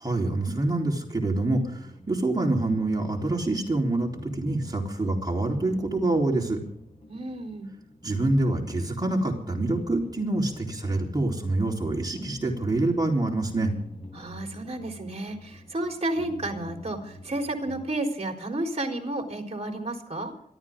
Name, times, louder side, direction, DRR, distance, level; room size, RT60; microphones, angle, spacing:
voice 1, 0.0-6.6 8.0-13.7, right 2 dB, 25° right, 0 dB, 3.9 m, -26 dB
sound 1, 1.5-17.8, left 1 dB, 45° left, 7.9 m, -46 dB
voice 2, 7.1-7.7 14.1-20.3, right 1 dB, 45° right, 2 dB, 4.1 m, -31 dB
26.5 x 13.0 x 3.8 m, 0.70 s
wide cardioid pair, 80°, 16 cm